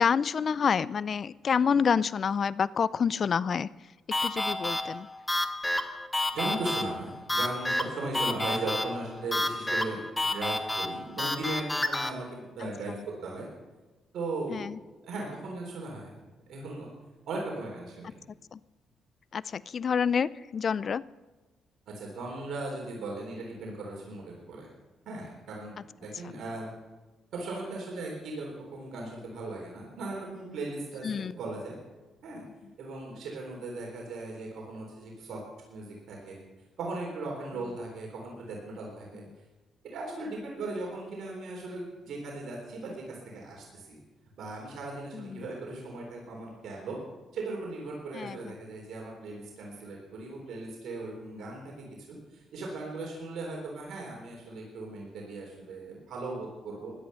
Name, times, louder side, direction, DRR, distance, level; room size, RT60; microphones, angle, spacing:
voice 1, 0.0-3.7 4.2-5.1 12.6-13.0 14.5-14.8 18.5-18.6 19.3-21.0 26.2-26.3 31.0-31.4 39.1-39.4 45.1-45.4 48.1-48.6, left 6 dB, 50° left, 20 dB, 0.4 m, -28 dB
sound 1, 4.1-12.1, left 1 dB, 10° left, 1.1 m, -30 dB
voice 2, 6.3-13.4 14.1-14.7 15.0-16.2 16.5-16.9 17.3-18.2 22.0-24.7 25.1-26.7 27.3-31.8 32.2-32.4 32.8-35.4 35.7-36.4 36.8-39.2 39.9-44.0 44.4-47.0 47.3-52.0 52.3-56.9, right 2 dB, 70° right, -1 dB, 3.8 m, -38 dB
16.5 x 11.5 x 5.6 m, 1.2 s
cardioid pair, 90°, 0 cm